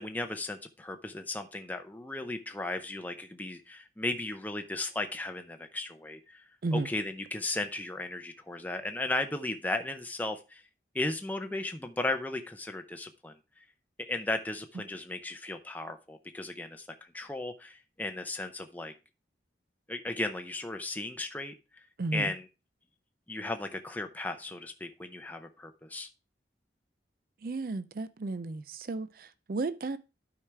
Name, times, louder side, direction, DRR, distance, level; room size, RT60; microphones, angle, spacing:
voice 1, 0.0-6.4 6.7-10.6 10.9-13.6 14.0-16.9 17.1-18.9 19.9-21.5 22.1-22.5 23.3-26.1, left 2 dB, 10° left, 0.6 m, -35 dB
voice 2, 22.0-22.3 27.4-30.0, right 3 dB, 50° right, 0.4 m, -33 dB
11.5 x 4.9 x 3.3 m
head